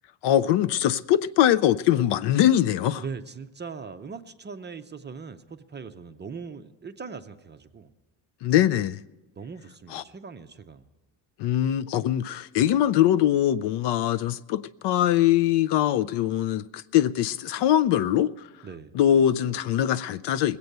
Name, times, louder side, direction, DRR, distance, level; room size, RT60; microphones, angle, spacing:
voice 1, 0.2-3.0 8.4-9.0 9.9-10.0 11.4-18.3 18.9-20.6, left 11 dB, 60° left, 0.5 m, -22 dB
voice 2, 3.0-7.9 9.4-10.8 18.6-18.9, right 5 dB, 25° right, 0.5 m, -40 dB
20.0 x 8.2 x 6.6 m
cardioid pair, 105°, 48 cm